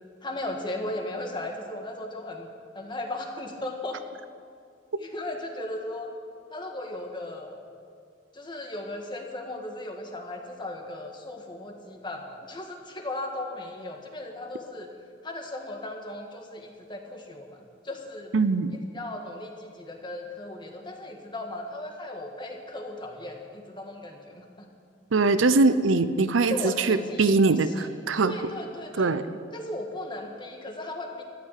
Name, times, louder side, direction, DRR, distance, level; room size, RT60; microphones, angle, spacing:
voice 1, 0.2-2.5 2.8-4.0 5.0-6.1 6.5-7.6 8.3-14.9 15.2-17.6 17.8-18.3 18.9-24.7 26.4-29.2 29.5-31.2, left 1 dB, 25° left, 2 dB, 1.7 m, -36 dB
voice 2, 18.3-18.7 25.1-28.3 29.0-29.2, right 3 dB, 80° right, 12 dB, 0.7 m, -22 dB
14.0 x 9.5 x 9.2 m, 2.2 s
head